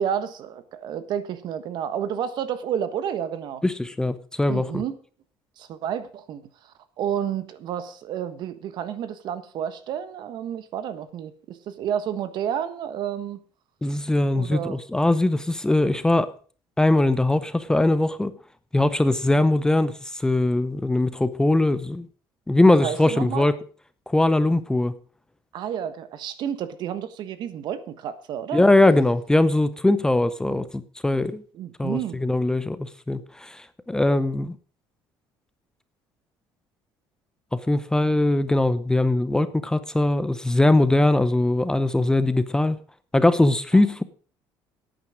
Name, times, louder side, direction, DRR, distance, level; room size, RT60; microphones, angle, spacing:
voice 1, 0.0-3.6 4.5-4.9 5.6-13.4 14.3-14.8 22.6-23.5 25.5-28.6 31.5-32.2 43.7-43.8, right 9 dB, 60° right, 13 dB, 1.4 m, -30 dB
voice 2, 3.6-4.8 13.8-16.3 16.8-18.3 18.7-22.1 22.5-23.5 24.1-24.9 28.5-31.4 31.8-34.6 37.5-42.8 43.1-44.0, left 2 dB, 10° left, 14 dB, 0.6 m, -21 dB
11.0 x 9.1 x 6.3 m, 0.41 s
cardioid pair, 135°, 9 cm